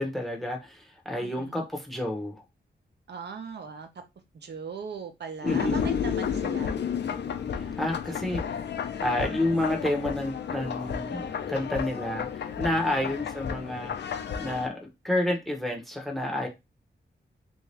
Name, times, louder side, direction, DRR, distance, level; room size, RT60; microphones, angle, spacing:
voice 1, 0.0-2.4 5.4-5.9 7.6-8.4 9.0-12.3 12.6-13.9 14.4-16.5, left 1 dB, ahead, 0.7 m, -29 dB
voice 2, 1.2-1.5 3.1-3.9 4.4-6.8 12.8-13.2, right 5 dB, 70° right, 0.7 m, -39 dB
sound 1, 5.5-14.7, left 7 dB, 75° left, 0.5 m, -32 dB
3.5 x 2.7 x 3.2 m
wide cardioid pair, 165°, 18 cm